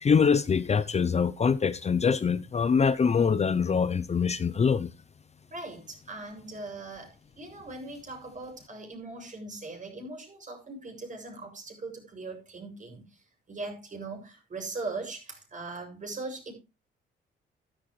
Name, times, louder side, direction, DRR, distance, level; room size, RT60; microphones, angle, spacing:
voice 1, 0.0-4.9, left 6 dB, 35° left, 0.7 m, -24 dB
voice 2, 5.5-16.5, right 3 dB, 40° right, 7.2 m, -40 dB
13.0 x 12.5 x 3.2 m
cardioid pair, 90°, 20 cm